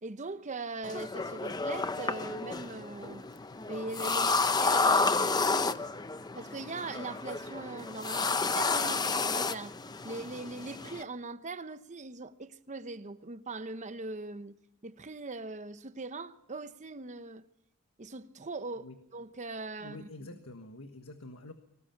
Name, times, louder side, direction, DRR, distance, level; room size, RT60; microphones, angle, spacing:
voice 1, 0.0-3.2 3.7-5.8 6.3-9.8 10.0-17.5 18.0-20.1, right 3 dB, 35° right, 0.9 m, -41 dB
sound 1, 0.8-11.0, left 4 dB, 20° left, 0.7 m, -31 dB
voice 2, 19.8-21.5, left 2 dB, 75° left, 1.5 m, -47 dB
24.0 x 19.0 x 5.9 m
head